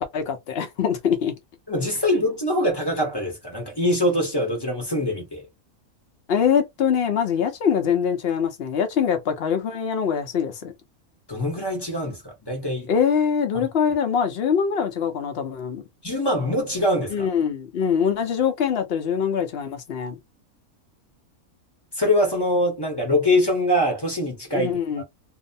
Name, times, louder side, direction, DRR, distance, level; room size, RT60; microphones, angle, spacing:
voice 1, 0.0-1.3 6.3-10.7 12.9-15.8 17.1-20.2 24.5-25.0, left 7 dB, 55° left, 0.8 m, -23 dB
voice 2, 1.7-5.5 11.3-12.9 13.5-13.6 16.0-17.3 22.0-24.7, left 1 dB, 20° left, 0.7 m, -23 dB
2.7 x 2.1 x 2.6 m
omnidirectional pair, 1.5 m